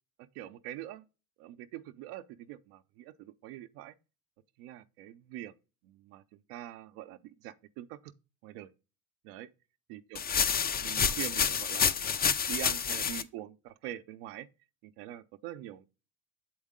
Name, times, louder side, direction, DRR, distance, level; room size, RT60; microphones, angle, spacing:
voice 1, 0.2-1.0 1.4-3.9 4.6-5.5 5.8-8.1 8.4-8.7 9.2-9.5 9.9-10.2 10.8-14.5 14.8-15.9, right 13 dB, 85° right, 0.6 m, -44 dB
sound 1, 10.2-13.2, left 7 dB, 25° left, 0.4 m, -28 dB
7.1 x 4.6 x 3.6 m
supercardioid pair, 100°, 42 cm